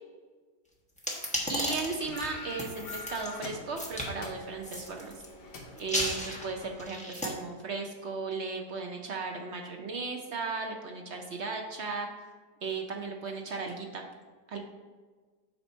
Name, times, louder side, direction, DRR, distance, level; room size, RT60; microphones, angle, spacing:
sound 1, 1.0-3.3 3.8-4.1 4.6-5.2 5.8-7.3, left 1 dB, 5° left, 0.9 m, -34 dB
voice 1, 1.5-5.2 5.8-12.3 12.6-14.0 14.5-14.6, right 4 dB, 65° right, 2 dB, 0.6 m, -36 dB
sound 2, 2.0-6.9, left 3 dB, 75° left, 1.5 m, -45 dB
8.5 x 2.9 x 5.4 m, 1.4 s
omnidirectional pair, 1.8 m